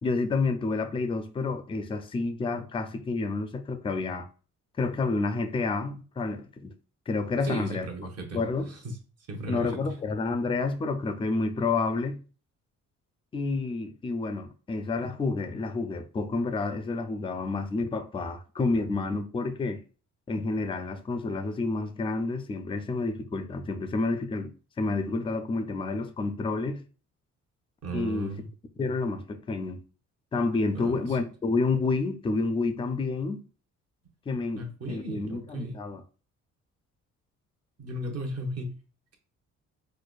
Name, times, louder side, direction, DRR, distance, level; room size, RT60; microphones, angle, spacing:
voice 1, 0.0-4.3 4.8-6.7 7.1-7.9 8.3-8.7 9.5-12.2 13.3-19.8 20.3-26.8 27.9-28.3 28.8-29.8 30.3-33.4 34.3-36.0, left 3 dB, 20° left, 0.4 m, -29 dB
voice 2, 7.4-8.4 8.7-9.0 9.3-9.8 27.8-28.5 30.7-31.1 34.5-35.8 37.8-38.8, right 1 dB, 55° right, 1.0 m, -36 dB
4.5 x 2.2 x 2.3 m
cardioid pair, 90°, 30 cm